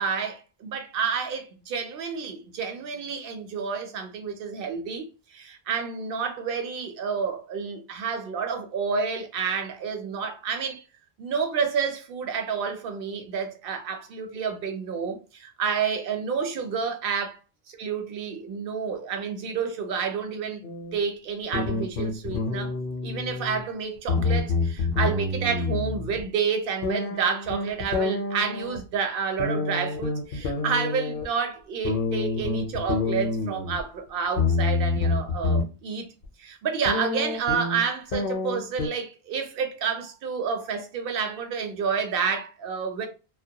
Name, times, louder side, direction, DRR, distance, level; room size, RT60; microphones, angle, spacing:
voice 1, 0.0-10.8 11.2-17.4 17.7-20.6 20.9-22.7 23.0-36.1 36.4-43.1, right 6 dB, 65° right, 0.7 m, -29 dB
sound 1, 20.6-21.0 21.5-23.6 24.0-26.2 26.8-28.8 29.4-31.2 31.8-33.8 34.4-35.6 36.2-36.3 36.9-38.9, left 3 dB, 65° left, 0.7 m, -27 dB
2.2 x 2.1 x 2.7 m
omnidirectional pair, 1.1 m